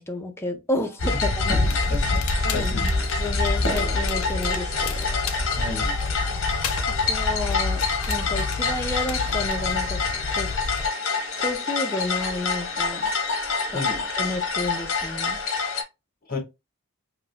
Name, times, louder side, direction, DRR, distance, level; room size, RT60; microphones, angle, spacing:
voice 1, 0.0-1.7 2.4-2.7 3.2-5.1 7.1-10.0 10.3-10.5 11.4-13.1 14.2-15.4, left 1 dB, 10° left, 0.5 m, -31 dB
sound 1, 0.8-14.5, right 1 dB, 10° right, 1.8 m, -44 dB
sound 2, 1.0-15.8, left 3 dB, 60° left, 0.8 m, -26 dB
Crackle, 1.5-10.9, left 4 dB, 85° left, 0.5 m, -31 dB
voice 2, 1.9-2.8 5.6-5.9 13.7-14.0 16.3-16.4, left 3 dB, 40° left, 1.0 m, -32 dB
3.5 x 2.6 x 2.3 m
head